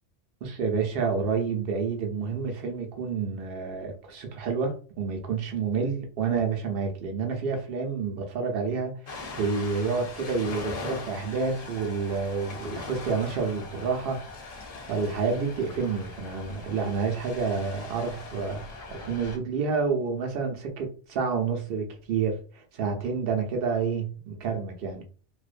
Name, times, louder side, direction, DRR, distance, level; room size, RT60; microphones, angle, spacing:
voice 1, 0.4-14.2 14.9-25.0, right 5 dB, 60° right, 0.7 m, -29 dB
Ocean, 9.1-19.4, left 3 dB, 55° left, 0.4 m, -41 dB
2.5 x 2.1 x 2.4 m
omnidirectional pair, 1.2 m